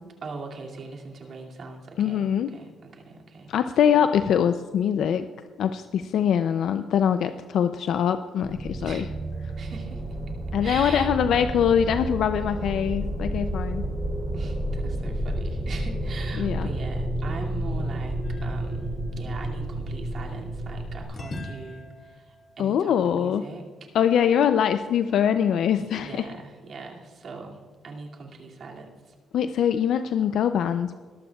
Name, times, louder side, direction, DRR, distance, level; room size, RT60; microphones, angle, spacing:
voice 1, 0.2-3.5 8.8-9.1 9.6-10.0 10.6-11.1 14.3-18.2 18.4-18.9 19.2-23.6 25.9-29.1, right 3 dB, 55° right, 0 dB, 2.4 m, -41 dB
voice 2, 2.0-2.5 3.5-5.3 5.6-9.0 10.5-13.9 16.4-16.7 22.6-23.5 23.9-26.3 29.3-30.9, left 8 dB, 70° left, 10 dB, 0.4 m, -23 dB
sound 1, 8.4-21.0, right 1 dB, 20° right, 2.9 m, -30 dB
sound 2, 18.2-20.4 21.1-24.0, left 2 dB, 45° left, 2.0 m, -44 dB
20.5 x 12.5 x 2.3 m, 1.5 s
cardioid pair, 90°, 0 cm